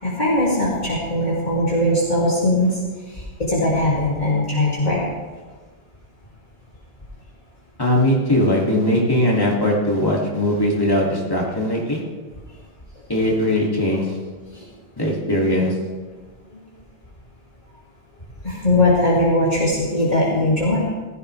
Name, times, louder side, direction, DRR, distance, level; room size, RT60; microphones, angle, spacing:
voice 1, 0.0-2.8 3.1-5.0 13.9-14.0 14.5-14.6 18.4-20.8, left 1 dB, 45° left, -8 dB, 2.8 m, -20 dB
voice 2, 7.8-12.0 13.1-14.2 15.0-15.8, left 1 dB, 20° left, -3 dB, 2.8 m, -20 dB
16.5 x 14.0 x 3.4 m, 1.4 s
omnidirectional pair, 1.1 m